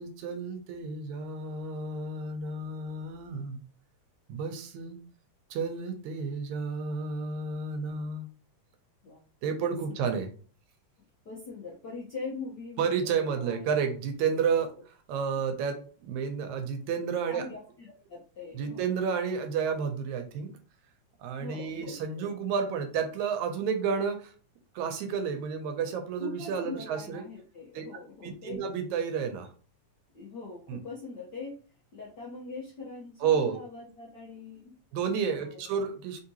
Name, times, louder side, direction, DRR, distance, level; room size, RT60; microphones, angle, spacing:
voice 1, 0.0-3.6 4.3-5.0 5.5-8.3 9.4-10.3 12.8-14.7 15.1-17.5 18.5-20.5 21.2-24.3 24.7-27.2 27.7-27.9 28.2-29.5 30.7-30.8 33.2-33.6 34.9-36.2, right 6 dB, 80° right, 6 dB, 1.9 m, -31 dB
voice 2, 11.2-13.7 14.6-14.7 17.3-18.9 21.4-22.3 26.2-28.6 30.1-31.6 31.9-34.7 35.3-35.7, left 4 dB, 65° left, -5 dB, 1.1 m, -42 dB
4.3 x 3.6 x 2.8 m, 0.40 s
omnidirectional pair, 3.4 m